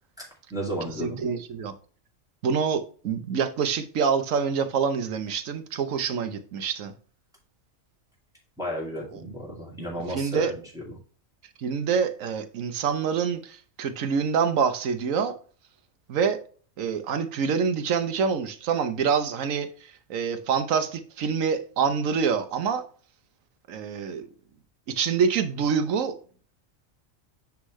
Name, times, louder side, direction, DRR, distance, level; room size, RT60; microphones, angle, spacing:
voice 1, 0.2-1.3 8.6-11.0, equal, 5° right, 2.5 m, -34 dB
voice 2, 1.0-1.7 2.4-6.9 9.1-9.2 10.1-10.5 11.6-15.3 16.1-16.4 16.8-19.7 20.1-22.8 23.7-24.3 24.9-26.1, right 6 dB, 75° right, 1.2 m, -26 dB
9.8 x 3.7 x 3.1 m
omnidirectional pair, 1.4 m